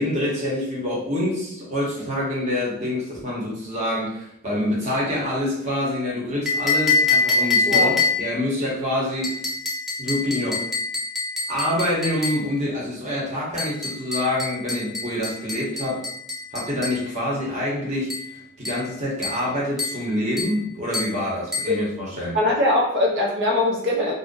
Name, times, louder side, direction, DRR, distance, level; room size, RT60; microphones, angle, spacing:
voice 1, 0.0-9.3 10.0-10.6 11.5-16.0 16.5-22.4, left 1 dB, 35° right, -5 dB, 1.1 m, -26 dB
sound 1, 6.5-8.4 9.2-12.5 13.6-17.0 18.1-18.3 18.6-18.9 19.2-19.5 19.8-20.1 20.4-20.6 20.9-21.2 21.5-21.8, left 3 dB, ahead, 0.6 m, -25 dB
voice 2, 22.3-24.1, left 2 dB, 55° right, -1 dB, 0.8 m, -21 dB
2.6 x 2.4 x 3.7 m, 0.74 s
head